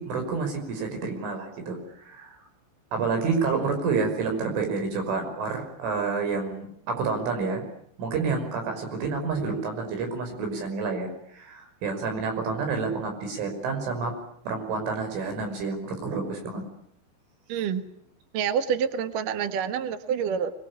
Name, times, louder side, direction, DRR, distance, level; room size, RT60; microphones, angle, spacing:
voice 1, 0.0-2.4 2.9-7.6 8.0-14.2 14.5-16.6, right 4 dB, 75° right, 5 dB, 8.1 m, -29 dB
voice 2, 17.5-17.8 18.3-20.5, right 7 dB, 60° right, 9 dB, 2.5 m, -27 dB
25.0 x 22.0 x 9.9 m, 0.68 s
omnidirectional pair, 5.6 m